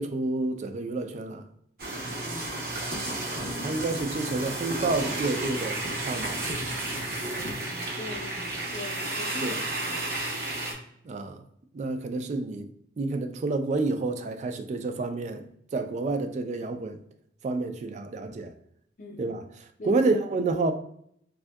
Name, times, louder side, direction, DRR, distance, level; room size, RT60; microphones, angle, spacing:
voice 1, 0.0-1.4 3.3-6.4 9.4-9.6 11.0-11.4 11.7-12.7 13.0-17.0 17.4-18.5 19.2-19.4 19.8-20.7, right 3 dB, 40° right, 0.3 m, -29 dB
sound 1, 1.8-10.7, right 2 dB, 55° right, 0.7 m, -32 dB
voice 2, 2.2-2.8 3.4-3.8 7.6-10.1 19.0-19.3 19.8-20.0, left 2 dB, 45° left, 0.5 m, -41 dB
3.5 x 2.6 x 2.2 m
head